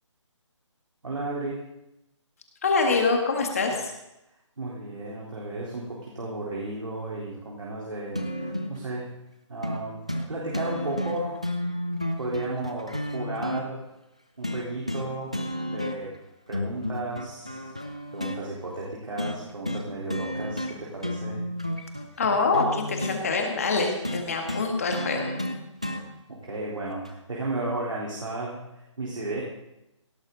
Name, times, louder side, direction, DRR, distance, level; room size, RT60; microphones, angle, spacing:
voice 1, 1.0-1.6 4.6-9.1 9.5-11.4 12.2-13.8 14.4-15.4 15.7-16.1 16.5-17.7 18.1-21.5 26.3-28.6 29.0-29.4, right 2 dB, 75° right, -5 dB, 3.8 m, -34 dB
voice 2, 2.6-3.9 22.2-25.3, left 4 dB, 30° left, 3 dB, 1.7 m, -25 dB
sound 1, 8.1-8.8 9.6-9.8 10.1-10.3 10.5-13.6 14.4-15.1 15.3-16.2 16.5-18.4 19.2-19.4 19.6-19.8 20.1-20.7 21.0-23.2 24.0-26.0 27.0-27.1, left 1 dB, 15° right, 0.3 m, -31 dB
17.0 x 12.0 x 3.9 m, 0.92 s
hypercardioid pair, 175°, 16 cm